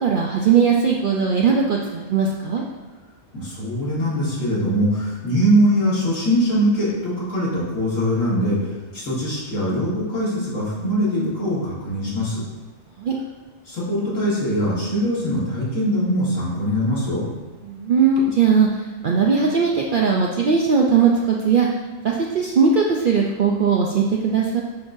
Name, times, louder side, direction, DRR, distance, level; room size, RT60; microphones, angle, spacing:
voice 1, 0.0-2.6 13.0-13.1 17.7-18.7 19.0-21.7 22.0-24.6, right 5 dB, 65° right, -1 dB, 0.5 m, -19 dB
voice 2, 3.3-8.6 8.9-12.4 13.7-17.2, equal, 70° left, -9 dB, 2.0 m, -22 dB
9.6 x 3.8 x 2.6 m, 1.2 s
omnidirectional pair, 1.4 m